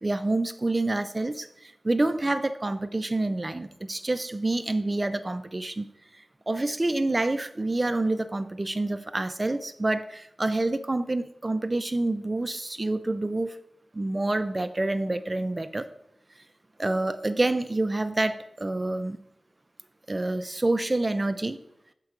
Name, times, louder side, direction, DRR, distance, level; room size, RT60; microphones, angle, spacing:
voice 1, 0.0-5.9 6.5-13.6 13.9-15.9 16.8-19.2 20.1-21.6, right 2 dB, 25° right, 11 dB, 0.4 m, -27 dB
6.4 x 4.5 x 4.7 m, 0.77 s
wide cardioid pair, 110°, 0 cm